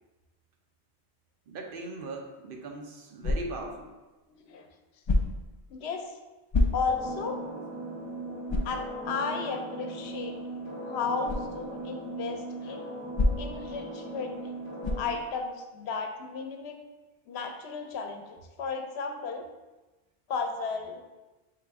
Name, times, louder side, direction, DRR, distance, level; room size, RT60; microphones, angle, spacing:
voice 1, 1.5-3.9, right 2 dB, 65° right, 2 dB, 0.7 m, -39 dB
sound 1, 3.2-3.7 5.0-5.5 6.5-7.1 7.6-7.7 8.5-8.8 11.2-11.5 13.1-13.7 14.8-15.2, left 2 dB, 45° left, 0.3 m, -27 dB
voice 2, 4.4-4.7 5.7-6.1 6.7-7.4 8.5-10.4 10.9-12.9 13.4-14.4 15.0-16.8 17.3-18.2 18.6-19.5 20.3-21.0, left 5 dB, 85° left, 5 dB, 0.8 m, -34 dB
sound 2, 6.8-15.2, right 1 dB, 10° left, 1.1 m, -38 dB
4.1 x 3.2 x 3.4 m, 1.1 s
omnidirectional pair, 1.1 m